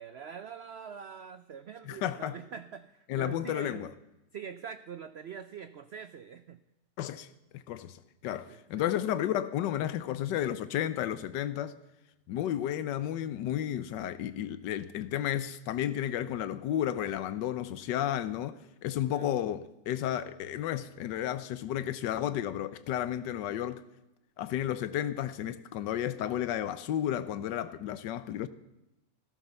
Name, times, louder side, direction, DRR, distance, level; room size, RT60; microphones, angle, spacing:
voice 1, 0.0-3.9 4.3-6.6 8.5-8.9 19.1-19.3, right 7 dB, 75° right, 0.6 m, -44 dB
voice 2, 1.8-2.4 3.1-3.9 7.0-7.3 7.5-11.8 12.3-23.8 24.4-28.5, left 11 dB, 90° left, 1.3 m, -32 dB
14.5 x 13.0 x 6.8 m
omnidirectional pair, 1.8 m